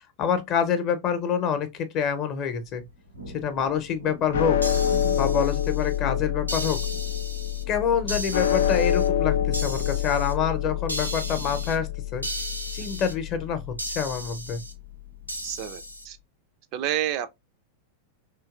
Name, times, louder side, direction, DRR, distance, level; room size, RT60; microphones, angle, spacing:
voice 1, 0.2-2.8 3.3-4.6 5.2-6.8 7.7-12.3 12.7-14.6, left 7 dB, 35° left, 0.7 m, -27 dB
Thunder, 2.7-15.9, left 2 dB, 90° left, 0.7 m, -41 dB
sound 1, 4.3-14.8, left 10 dB, 60° left, 0.3 m, -27 dB
sound 2, 4.6-6.0 6.5-7.6 8.1-9.1 9.5-10.3 10.9-11.8 12.2-13.1 13.8-14.7 15.3-16.0, right 1 dB, 90° right, 0.5 m, -36 dB
voice 2, 15.4-16.2 16.7-17.4, right 11 dB, 45° right, 0.4 m, -29 dB
3.1 x 2.8 x 2.3 m
figure-of-eight pair, 90°, 0 cm